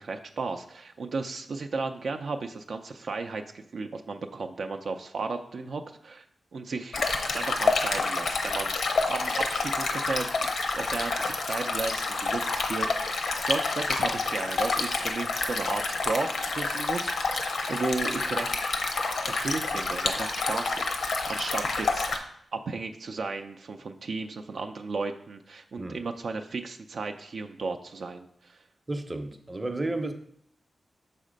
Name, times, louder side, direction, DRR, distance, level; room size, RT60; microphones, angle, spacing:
voice 1, 0.0-6.2 6.5-7.0 7.3-18.5 19.3-22.2 22.5-28.6, right 4 dB, 65° right, 5 dB, 0.4 m, -34 dB
Stream, 6.9-22.2, left 3 dB, 85° left, 0.8 m, -28 dB
voice 2, 28.9-30.1, right 2 dB, 25° right, 6 dB, 0.7 m, -32 dB
6.4 x 4.2 x 5.0 m, 0.67 s
wide cardioid pair, 100°, 0 cm